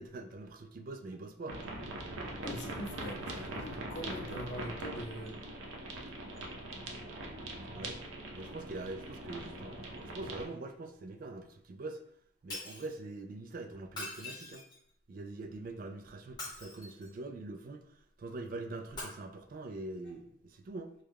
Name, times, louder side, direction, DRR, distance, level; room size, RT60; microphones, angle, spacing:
voice 1, 0.0-1.7 7.7-8.0 8.3-12.0 12.4-14.6 15.1-17.9 18.2-20.9, right 2 dB, 45° right, 6 dB, 0.3 m, -43 dB
sound 1, 1.5-10.4, right 1 dB, 85° right, 0.6 m, -42 dB
voice 2, 2.4-5.4, equal, 65° left, 0 dB, 0.6 m, -42 dB
Shatter, 12.5-12.9 13.9-14.9 16.2-17.2 18.9-19.0, left 2 dB, 20° left, 1.0 m, -43 dB
3.1 x 2.3 x 3.4 m, 0.69 s
head